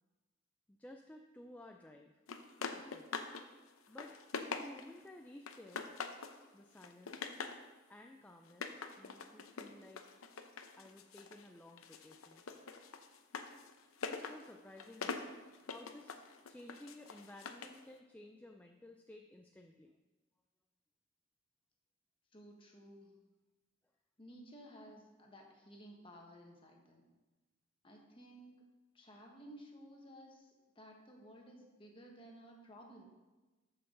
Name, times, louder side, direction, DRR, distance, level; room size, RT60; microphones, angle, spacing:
voice 1, 0.7-2.1 2.7-3.2 3.9-4.1 4.5-5.9 6.5-7.3 7.9-10.0 10.8-12.4 14.1-15.2 15.6-19.9, left 1 dB, 10° left, 3 dB, 0.3 m, -55 dB
sound 1, 2.3-3.4 3.8-5.0 5.5-6.4 6.8-7.6 8.5-11.5 11.8-17.8, left 5 dB, 85° left, 0.7 m, -44 dB
voice 2, 22.3-23.1 24.2-27.1 27.8-28.5 28.9-33.0, equal, 25° left, 1 dB, 1.3 m, -56 dB
13.5 x 5.9 x 3.8 m, 1.2 s
head